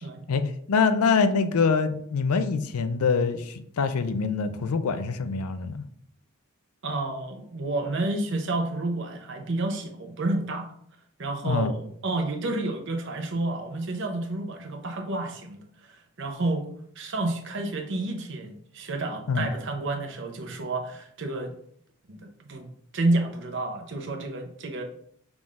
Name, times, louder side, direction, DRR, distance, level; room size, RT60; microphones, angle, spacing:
voice 1, 0.3-5.8 11.4-11.7 19.3-19.5, left 5 dB, 85° left, 10 dB, 0.5 m, -25 dB
voice 2, 6.8-10.7 11.2-16.7 17.0-21.5 22.1-22.7 22.9-24.8, right 2 dB, 55° right, 5 dB, 0.7 m, -30 dB
5.9 x 3.6 x 2.5 m, 0.65 s
head